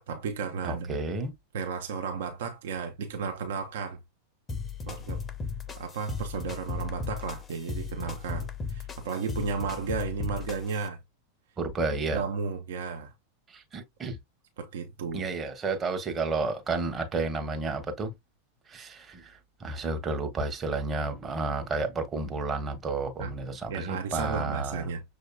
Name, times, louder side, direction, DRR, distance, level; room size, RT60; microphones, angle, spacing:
voice 1, 0.0-1.0 1.5-4.0 4.9-5.2 5.7-11.0 12.1-13.1 14.6-15.3 23.2-23.3 23.7-25.0, right 5 dB, 55° right, 0.7 m, -33 dB
voice 2, 0.6-1.3 11.6-12.2 13.5-14.2 15.1-18.1 18.7-19.3 19.6-24.9, right 3 dB, 20° right, 1.0 m, -31 dB
sound 1, 4.5-10.9, left 4 dB, 20° left, 0.6 m, -36 dB
6.5 x 2.8 x 2.3 m
figure-of-eight pair, 90°, 0 cm